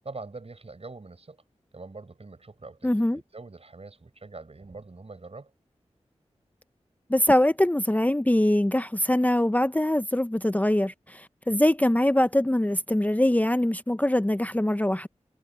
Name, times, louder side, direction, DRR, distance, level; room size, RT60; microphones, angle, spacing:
voice 1, 0.0-1.4 1.7-5.5, right 3 dB, 60° right, 7.5 m, -43 dB
voice 2, 2.8-3.2 7.1-15.1, left 1 dB, 15° left, 0.7 m, -23 dB
cardioid pair, 45°, 12 cm